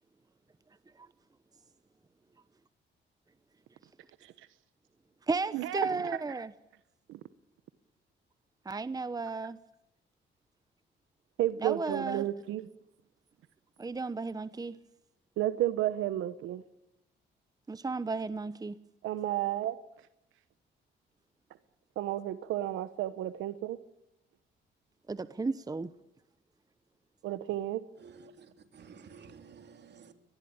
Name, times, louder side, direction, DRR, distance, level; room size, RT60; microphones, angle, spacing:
voice 1, 5.3-6.5 8.6-9.6 11.6-12.3 13.8-14.8 17.7-18.8 25.1-25.9, right 3 dB, 20° right, 1.0 m, -34 dB
voice 2, 11.4-12.7 15.4-16.6 19.0-19.8 22.0-23.8 27.2-27.8, right 14 dB, 90° right, 1.1 m, -32 dB
voice 3, 28.0-30.1, right 5 dB, 60° right, 3.4 m, -53 dB
24.0 x 20.0 x 8.8 m
cardioid pair, 90°, 20 cm